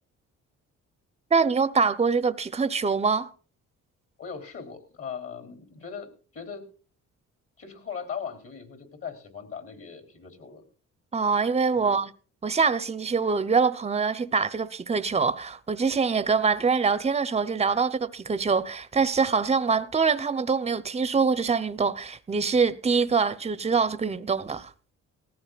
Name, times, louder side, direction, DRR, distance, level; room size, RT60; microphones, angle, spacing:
voice 1, 1.3-3.3 11.1-12.1 12.4-24.7, right 5 dB, 20° right, 0.8 m, -24 dB
voice 2, 4.2-6.7 7.6-10.6 11.8-12.0, left 6 dB, 50° left, 3.6 m, -39 dB
19.0 x 14.5 x 2.4 m
cardioid pair, 90°, 30 cm